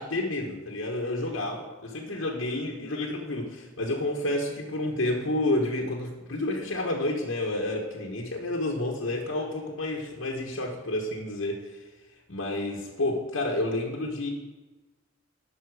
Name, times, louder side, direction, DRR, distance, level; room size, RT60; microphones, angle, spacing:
voice 1, 0.0-11.7 12.3-14.3, left 1 dB, 75° left, -1 dB, 1.2 m, -30 dB
11.0 x 5.6 x 4.8 m, 1.2 s
head